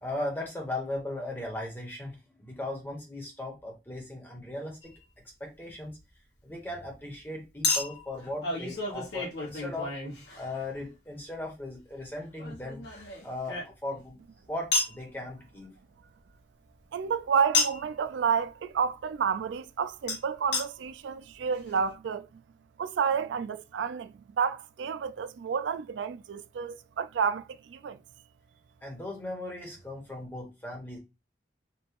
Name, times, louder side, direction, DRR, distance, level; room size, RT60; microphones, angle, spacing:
voice 1, 0.0-5.0 5.4-6.0 6.4-9.9 10.4-12.8 13.2-14.2 14.5-15.7 28.8-31.0, left 2 dB, 10° left, 1.2 m, -37 dB
Chink clink, 4.8-5.0 7.6-10.8 12.4-14.1 14.7-15.0 17.5-17.9 20.1-20.2 20.5-20.6 21.3-21.4 21.6-21.7, left 3 dB, 70° left, 1.4 m, -31 dB
voice 2, 16.9-22.3 22.8-28.0, right 6 dB, 85° right, 0.3 m, -30 dB
4.7 x 2.4 x 3.5 m
head